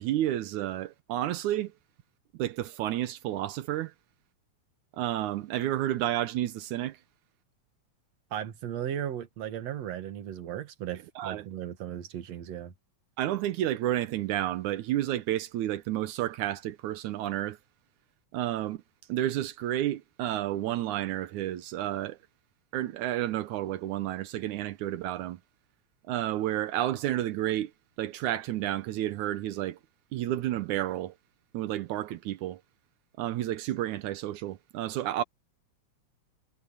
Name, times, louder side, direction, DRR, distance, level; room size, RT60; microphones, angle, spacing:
voice 1, 0.0-1.7 2.4-3.9 4.9-7.0 11.2-11.5 13.2-17.6 18.3-18.8 19.1-22.2 22.7-25.4 26.1-27.7 28.0-29.8 30.1-31.1 31.5-32.6 33.2-35.2, right 13 dB, 85° right, 2.3 m, -31 dB
voice 2, 8.3-12.7, right 10 dB, 65° right, 2.7 m, -36 dB
omnidirectional pair, 3.3 m